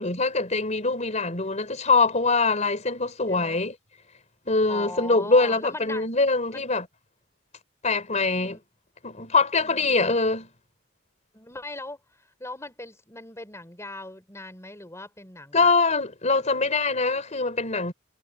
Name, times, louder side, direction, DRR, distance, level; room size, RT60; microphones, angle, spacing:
voice 1, 0.0-3.7 4.5-6.9 7.8-8.6 9.0-10.5 15.5-17.9, left 3 dB, 35° left, 4.1 m, -23 dB
voice 2, 3.3-3.6 4.7-6.1 6.5-6.7 8.3-8.6 9.6-9.9 11.3-12.0 12.4-15.7, left 2 dB, 15° left, 5.0 m, -40 dB
head